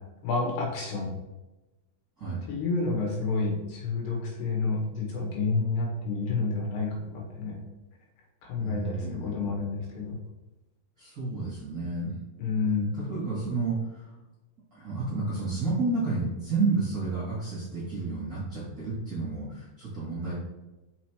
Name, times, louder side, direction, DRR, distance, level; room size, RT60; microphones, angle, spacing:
voice 1, 0.2-1.1 2.5-7.6 8.4-10.2 12.4-12.9, left 4 dB, 70° left, -2 dB, 3.4 m, -29 dB
voice 2, 2.2-2.5 8.6-9.5 11.0-12.1 12.7-14.1 14.7-20.3, right 3 dB, 35° right, -9 dB, 1.8 m, -31 dB
6.1 x 5.6 x 3.1 m, 1.0 s
omnidirectional pair, 5.1 m